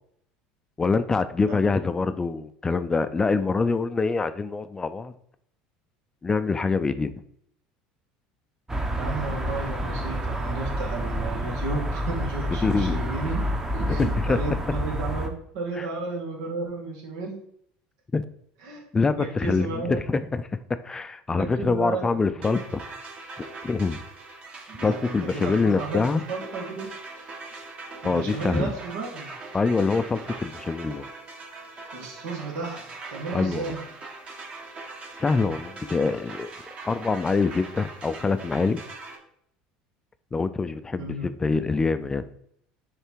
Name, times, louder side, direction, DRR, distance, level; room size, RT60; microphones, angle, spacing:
voice 1, 0.8-5.1 6.2-7.1 12.6-13.1 13.9-14.4 15.8-15.9 18.1-18.2 18.9-20.6 20.8-22.8 23.6-24.0 24.8-26.2 28.0-28.7 29.5-31.1 33.3-33.7 35.2-36.5 36.8-38.8 40.3-42.3, left 4 dB, 20° left, 12 dB, 0.4 m, -25 dB
sound 1, 8.7-15.3, right 1 dB, 15° right, 0.9 m, -28 dB
voice 2, 9.0-17.4 18.6-18.9 19.2-20.0 21.3-22.6 24.7-26.0 26.3-26.9 28.0-29.3 31.9-33.8 41.0-41.3, right 3 dB, 80° right, -1 dB, 2.1 m, -33 dB
sound 2, 22.4-39.2, right 3 dB, 40° right, 1.5 m, -41 dB
6.7 x 3.3 x 4.6 m, 0.70 s
supercardioid pair, 105°, 3 cm